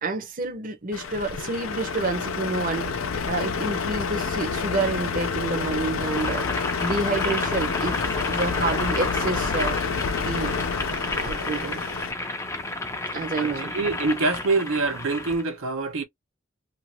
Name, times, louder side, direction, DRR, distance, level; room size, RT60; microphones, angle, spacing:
voice 1, 0.0-2.9 3.2-6.4 6.8-9.8 10.2-10.5 11.0-11.8 13.1-13.7, right 3 dB, 40° right, 0.7 m, -29 dB
Truck, 0.9-12.1, left 5 dB, 85° left, 0.6 m, -28 dB
Boiling, 6.0-15.4, left 2 dB, 15° left, 0.5 m, -31 dB
voice 2, 13.4-16.0, right 3 dB, 85° right, 0.7 m, -25 dB
2.6 x 2.4 x 2.9 m
head